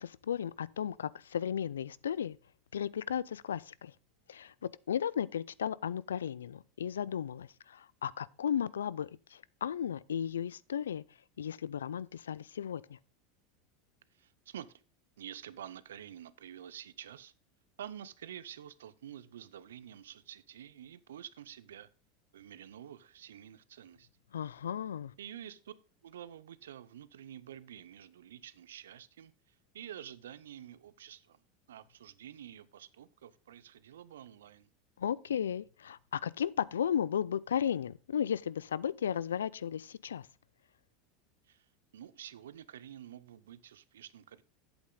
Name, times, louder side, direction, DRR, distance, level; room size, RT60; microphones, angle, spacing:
voice 1, 0.0-2.4 2.7-3.9 4.3-11.0 11.4-13.0 24.3-25.1 35.0-40.3, left 8 dB, 90° left, 0.3 m, -35 dB
voice 2, 14.1-14.8 15.2-17.3 17.8-21.9 22.3-24.1 25.2-25.7 26.0-31.4 31.7-34.7 41.4-41.7 41.9-44.4, right 10 dB, 85° right, 0.6 m, -49 dB
8.2 x 8.0 x 3.8 m
hypercardioid pair, 95°, 0 cm